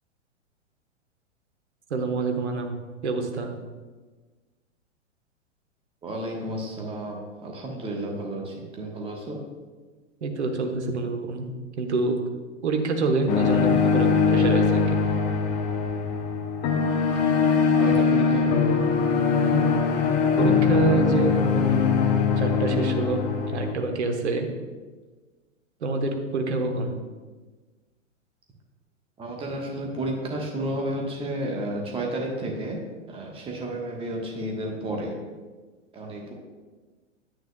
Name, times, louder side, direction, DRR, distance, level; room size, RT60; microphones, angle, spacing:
voice 1, 1.9-2.7 3.0-3.5 10.2-11.5 11.8-12.2 12.6-15.0 20.4-21.9 22.4-23.2 23.5-24.5 25.8-26.9, right 3 dB, 60° right, 4 dB, 1.2 m, -26 dB
voice 2, 6.0-9.4 17.8-18.8 19.4-19.5 29.2-32.8 33.1-35.1 35.9-36.3, right 1 dB, 15° right, 0 dB, 1.2 m, -32 dB
sound 1, 13.3-23.7, left 5 dB, 20° left, 0.6 m, -22 dB
9.3 x 9.0 x 2.2 m, 1.3 s
figure-of-eight pair, 105°, 38 cm